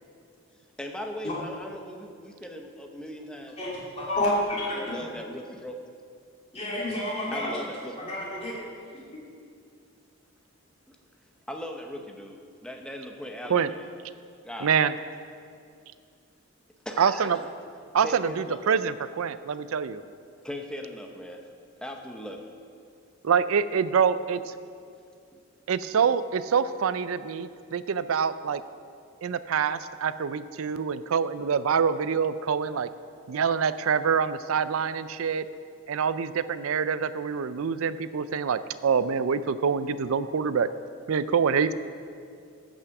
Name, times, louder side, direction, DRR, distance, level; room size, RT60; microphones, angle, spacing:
voice 1, 0.8-3.6 4.2-5.8 7.3-8.0 10.9-11.0 11.5-13.9 14.4-14.9 16.8-17.5 17.8-18.6 20.4-21.4 21.8-22.5, equal, 5° left, 3 dB, 0.8 m, -39 dB
voice 2, 4.0-5.1 6.5-7.6 7.9-8.6, left 1 dB, 30° left, -6 dB, 2.9 m, -29 dB
voice 3, 14.6-14.9 17.0-17.4 17.9-20.0 23.2-24.4 25.7-28.6 29.2-32.9 33.3-35.4 35.9-40.7 41.1-41.7, right 6 dB, 80° right, 14 dB, 0.4 m, -25 dB
14.0 x 6.2 x 5.9 m, 2.3 s
head